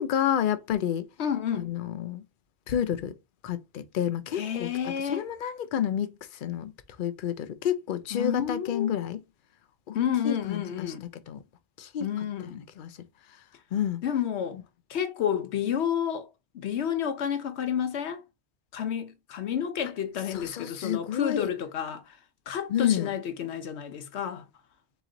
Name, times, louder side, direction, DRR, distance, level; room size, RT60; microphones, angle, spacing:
voice 1, 0.0-1.1 1.6-2.2 2.7-3.1 3.4-4.7 5.1-6.7 7.0-9.2 9.9-10.0 10.2-10.6 11.3-11.4 11.8-12.1 12.4-12.9 13.7-14.0 20.3-21.5 22.7-23.1, left 9 dB, 60° left, 0.7 m, -29 dB
voice 2, 1.2-1.7 4.3-5.3 8.1-9.1 9.9-11.1 12.0-12.6 14.0-14.6 14.9-18.2 18.7-22.2 22.5-24.5, left 9 dB, 80° left, 1.0 m, -30 dB
4.0 x 3.0 x 3.8 m
omnidirectional pair, 1.1 m